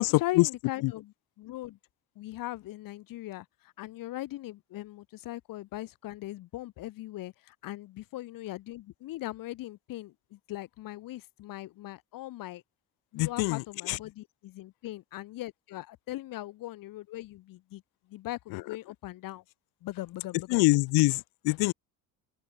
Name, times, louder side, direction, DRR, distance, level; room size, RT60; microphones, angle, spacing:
voice 1, 0.0-1.8 2.2-12.6 13.1-17.8 18.1-19.4 19.8-20.6, left 16 dB, 65° left, 3.8 m, -40 dB
voice 2, 13.2-13.6 13.9-14.0 20.5-21.7, left 23 dB, 80° left, 0.6 m, -24 dB
cardioid pair, 180°, 37 cm